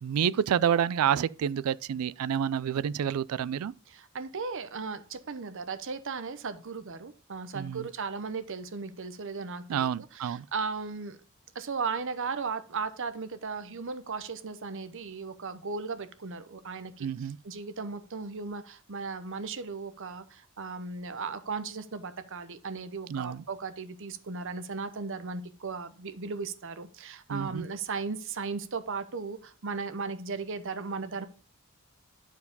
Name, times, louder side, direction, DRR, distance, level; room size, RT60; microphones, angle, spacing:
voice 1, 0.0-3.7 7.5-7.9 9.7-10.4 17.0-17.4 23.1-23.4 27.3-27.6, right 8 dB, 80° right, 0.3 m, -28 dB
voice 2, 3.9-11.2 11.5-31.3, right 4 dB, 65° right, 0.8 m, -36 dB
10.5 x 4.7 x 5.4 m
head